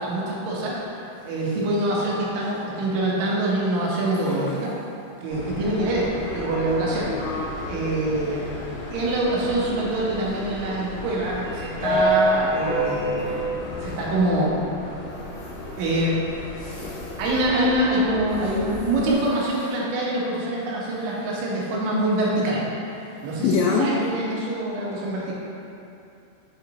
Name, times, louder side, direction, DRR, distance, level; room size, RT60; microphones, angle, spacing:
voice 1, 0.0-4.7 5.2-8.4 8.9-13.3 13.8-14.5 15.8-16.2 17.2-22.6 23.2-25.3, right 1 dB, 80° right, -5 dB, 3.4 m, -25 dB
Subway metro underground, 5.3-19.1, equal, 60° left, 2.4 m, -30 dB
voice 2, 16.6-17.2 23.4-23.9, left 5 dB, 85° left, -3 dB, 2.9 m, -24 dB
7.2 x 5.7 x 2.9 m, 2.6 s
omnidirectional pair, 5.2 m